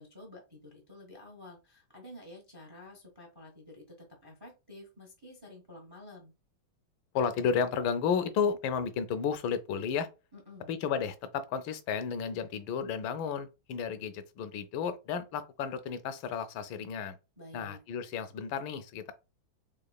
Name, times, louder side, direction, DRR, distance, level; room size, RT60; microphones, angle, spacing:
voice 1, 0.0-6.3 10.3-10.7 17.4-17.8, left 1 dB, 30° right, 0.4 m, -50 dB
voice 2, 7.1-10.1 10.7-17.2 17.5-19.1, left 6 dB, 80° left, 1.3 m, -32 dB
3.9 x 3.5 x 2.3 m
omnidirectional pair, 2.2 m